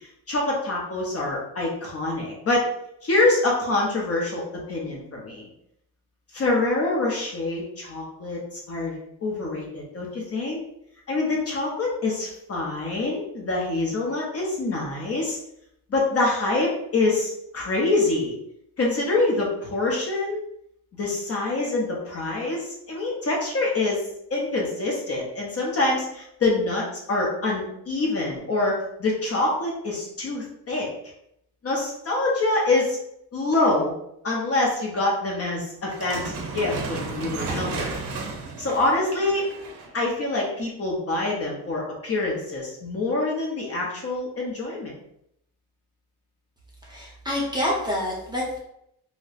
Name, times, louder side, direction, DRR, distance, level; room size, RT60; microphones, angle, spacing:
voice 1, 0.3-2.7 3.0-5.5 6.3-10.6 11.1-15.4 15.9-18.4 18.8-20.4 21.0-24.1 24.3-30.9 31.6-33.0 33.3-33.9 34.2-38.0 38.6-39.5 39.9-44.9, left 2 dB, 35° left, -3 dB, 0.7 m, -25 dB
sound 1, 35.8-40.0, right 4 dB, 80° right, 0.7 m, -33 dB
voice 2, 46.9-48.6, left 1 dB, 10° right, -4 dB, 0.7 m, -27 dB
4.1 x 2.1 x 2.4 m, 0.77 s
cardioid pair, 150°, 40 cm